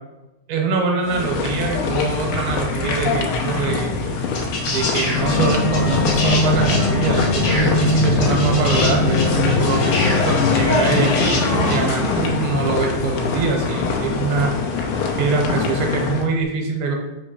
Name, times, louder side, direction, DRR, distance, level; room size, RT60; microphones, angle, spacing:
voice 1, 0.5-3.9 4.7-14.6 15.2-17.0, right 4 dB, 75° right, 2 dB, 2.5 m, -23 dB
sound 1, 1.0-16.3, left 4 dB, 90° left, 2.7 m, -23 dB
sound 2, 4.3-11.8 13.1-13.2, left 2 dB, 60° left, 3.1 m, -27 dB
sound 3, 5.1-10.6, left 2 dB, 75° left, 2.2 m, -21 dB
6.1 x 3.0 x 5.6 m, 1.0 s
omnidirectional pair, 4.5 m